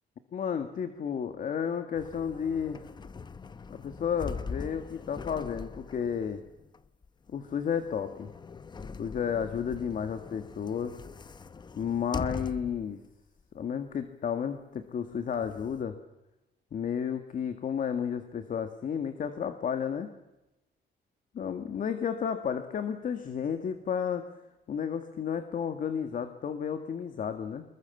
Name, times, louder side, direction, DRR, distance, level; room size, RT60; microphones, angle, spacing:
voice 1, 0.3-2.8 3.7-6.4 7.3-8.3 9.0-11.0 11.8-13.0 13.5-16.0 16.7-20.1 21.3-24.3 24.7-27.6, left 7 dB, 50° left, 8 dB, 1.8 m, -32 dB
sound 1, 1.9-12.9 13.4-13.5 15.0-15.8, left 5 dB, 25° left, 0.8 m, -42 dB
26.0 x 22.0 x 7.2 m, 0.94 s
cardioid pair, 150°, 18 cm